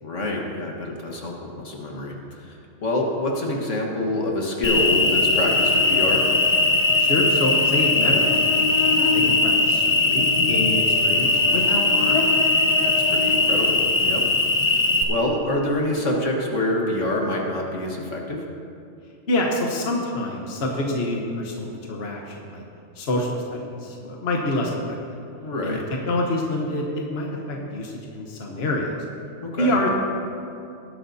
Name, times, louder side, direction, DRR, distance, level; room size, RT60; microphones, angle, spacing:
voice 1, 0.0-6.3 12.8-14.2 14.6-18.4 25.4-25.8 29.4-29.7, left 1 dB, 80° left, 0 dB, 1.9 m, -26 dB
Cricket, 4.6-15.0, left 2 dB, 30° left, 0.9 m, -19 dB
voice 2, 7.0-12.2 19.3-22.6 22.9-25.2 25.6-25.8 26.1-29.0 29.6-29.9, left 1 dB, 55° left, 0 dB, 1.4 m, -27 dB
19.5 x 11.0 x 2.8 m, 2.5 s
omnidirectional pair, 1.3 m